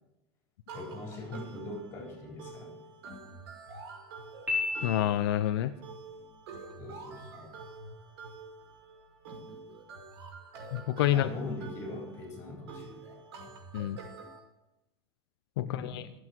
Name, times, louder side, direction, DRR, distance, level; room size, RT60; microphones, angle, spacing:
voice 1, 0.7-2.8 6.8-7.5 11.1-13.0 13.4-13.5 15.6-16.0, left 2 dB, 20° left, 0 dB, 4.3 m, -41 dB
sound 1, 0.7-14.4, right 4 dB, 80° right, 5.6 m, -47 dB
Piano, 4.5-5.6, left 4 dB, 10° right, 4.3 m, -33 dB
voice 2, 4.8-5.7 10.7-11.3 13.7-14.0 15.6-16.0, left 12 dB, 75° left, 9 dB, 0.8 m, -28 dB
24.5 x 8.1 x 4.7 m, 0.92 s
supercardioid pair, 170°, 13 cm